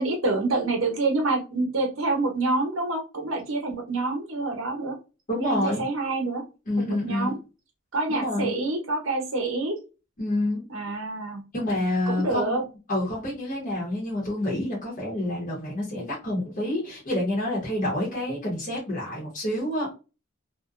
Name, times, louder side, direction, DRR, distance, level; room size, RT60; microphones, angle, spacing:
voice 1, 0.0-5.0 5.4-6.4 6.8-7.3 7.9-9.7 10.7-11.4 12.1-12.6, right 2 dB, 70° right, 2 dB, 0.9 m, -27 dB
voice 2, 5.3-5.9 6.7-7.4 8.1-8.6 10.2-10.6 11.5-12.6 12.9-19.9, left 1 dB, 40° left, -5 dB, 0.9 m, -28 dB
2.6 x 2.2 x 2.3 m, 0.31 s
head